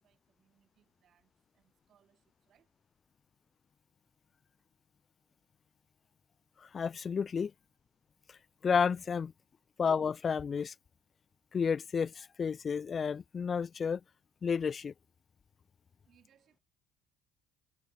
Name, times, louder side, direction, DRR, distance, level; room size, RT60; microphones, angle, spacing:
voice 1, 0.0-2.7 16.0-16.6, right 9 dB, 55° right, 7.2 m, -71 dB
voice 2, 6.6-7.5 8.6-9.3 9.8-10.7 11.5-14.0 14.4-14.9, left 6 dB, 40° left, 0.3 m, -31 dB
supercardioid pair, 80°, 0 cm